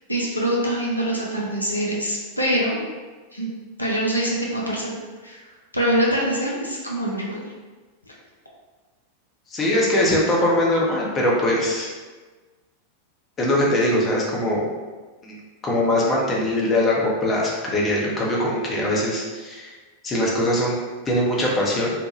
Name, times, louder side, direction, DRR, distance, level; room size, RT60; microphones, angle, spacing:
voice 1, 0.1-2.8 3.3-3.5 3.8-5.4 5.7-7.4, right 1 dB, 85° left, -4 dB, 0.5 m, -24 dB
voice 2, 9.5-11.9 13.4-14.7 15.2-15.3 15.6-19.7 20.0-20.8 21.1-21.9, left 1 dB, 20° left, -4 dB, 0.7 m, -21 dB
2.8 x 2.2 x 3.1 m, 1.3 s
figure-of-eight pair, 90°, 0 cm